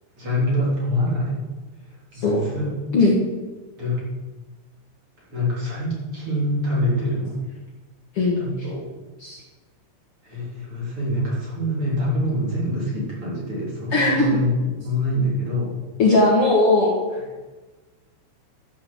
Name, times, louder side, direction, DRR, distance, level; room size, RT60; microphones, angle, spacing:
voice 1, 0.2-1.4 2.1-2.7 3.8-4.1 5.3-7.4 8.4-8.9 10.2-15.8, left 1 dB, 30° right, -5 dB, 3.7 m, -25 dB
voice 2, 13.9-14.3 16.0-16.9, left 2 dB, 90° left, -3 dB, 1.2 m, -18 dB
11.5 x 7.2 x 7.7 m, 1.2 s
omnidirectional pair, 5.5 m